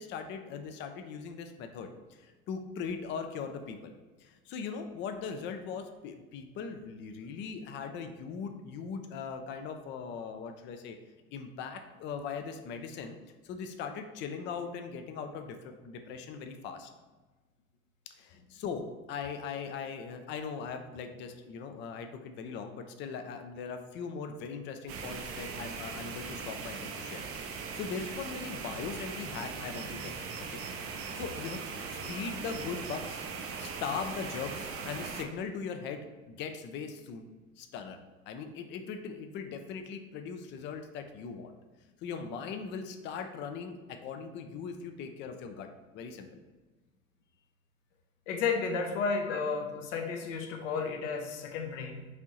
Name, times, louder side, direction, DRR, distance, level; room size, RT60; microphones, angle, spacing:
voice 1, 0.0-3.9 4.2-11.0 11.3-13.2 13.4-16.9 18.2-30.2 30.5-30.6 30.9-31.6 31.9-33.2 33.6-37.3 37.6-41.5 42.0-45.7 45.9-46.4 49.3-49.4, left 6 dB, 30° left, 6 dB, 0.4 m, -40 dB
sound 1, 24.9-35.2, right 5 dB, 35° right, 0.5 m, -40 dB
voice 2, 48.3-52.1, left 5 dB, 65° left, 4 dB, 0.7 m, -32 dB
4.9 x 2.6 x 2.9 m, 1.3 s
figure-of-eight pair, 70°, 42 cm